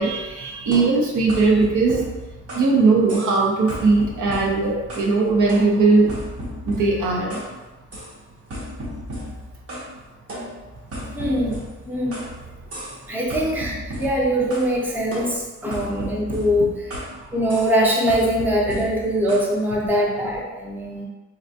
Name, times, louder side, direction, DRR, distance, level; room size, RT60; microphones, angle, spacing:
voice 1, 0.0-2.0 2.5-6.1 6.6-7.4, right 3 dB, 85° right, -2 dB, 0.7 m, -19 dB
sound 1, 0.7-2.8 3.1-3.4 3.7-5.2 5.5-7.5 7.9-8.1 8.5-9.9 10.3-12.3 12.7-13.0 13.3-14.7 15.1-17.2 17.5-17.8 18.1-19.5, equal, 50° right, 0.9 m, -34 dB
voice 2, 11.1-11.6 11.9-12.2 13.1-16.9 17.3-21.0, equal, 5° right, -3 dB, 0.5 m, -22 dB
3.9 x 2.2 x 2.7 m, 1.2 s
wide cardioid pair, 140°, 30 cm